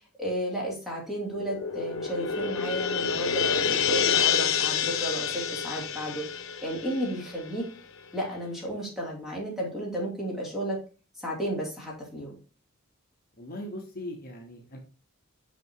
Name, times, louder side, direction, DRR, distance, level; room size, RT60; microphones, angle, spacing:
voice 1, 0.0-6.3 6.6-7.7 8.1-10.8 11.2-12.4, equal, ahead, -3 dB, 2.5 m, -33 dB
sound 1, 1.2-7.8, left 7 dB, 75° left, 0.8 m, -28 dB
voice 2, 13.4-14.8, left 1 dB, 45° left, 1 dB, 1.1 m, -39 dB
6.3 x 5.7 x 2.7 m, 0.35 s
head